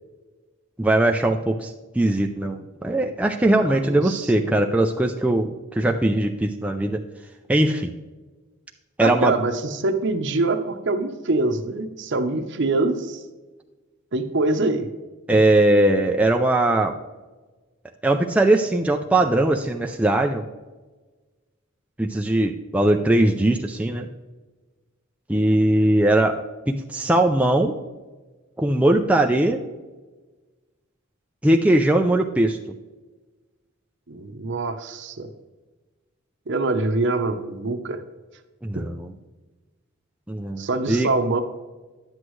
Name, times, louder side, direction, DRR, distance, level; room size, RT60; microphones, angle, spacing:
voice 1, 0.8-7.0 7.5-7.9 9.0-9.4 15.3-16.9 18.0-20.5 22.0-24.1 25.3-27.7 28.6-29.6 31.4-32.6 38.6-39.1 40.3-41.1, right 1 dB, 5° right, 2 dB, 0.3 m, -20 dB
voice 2, 3.9-4.5 9.0-13.2 14.1-14.9 34.1-35.3 36.5-38.0 38.7-38.8 40.6-41.4, right 2 dB, 55° right, 8 dB, 0.7 m, -24 dB
10.5 x 7.9 x 3.1 m, 1.3 s
head